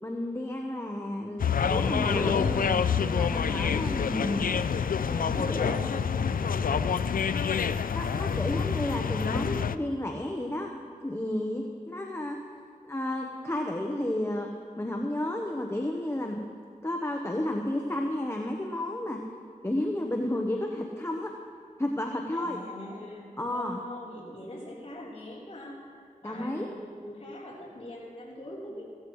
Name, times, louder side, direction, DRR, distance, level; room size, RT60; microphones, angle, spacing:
voice 1, 0.0-2.7 3.0-4.5 5.1-5.8 7.9-10.7 11.0-12.4 12.8-14.5 14.8-16.4 16.8-19.2 19.6-21.3 21.8-22.6 23.4-23.8 26.2-26.7, left 1 dB, 20° left, 2 dB, 1.0 m, -32 dB
sound 1, 1.4-9.8, left 6 dB, 80° left, 0.4 m, -27 dB
voice 2, 2.0-2.6 3.3-4.7 5.2-6.8 22.3-28.8, left 1 dB, 45° left, -9 dB, 3.9 m, -41 dB
17.5 x 15.5 x 3.2 m, 2.2 s
wide cardioid pair, 60°, 14 cm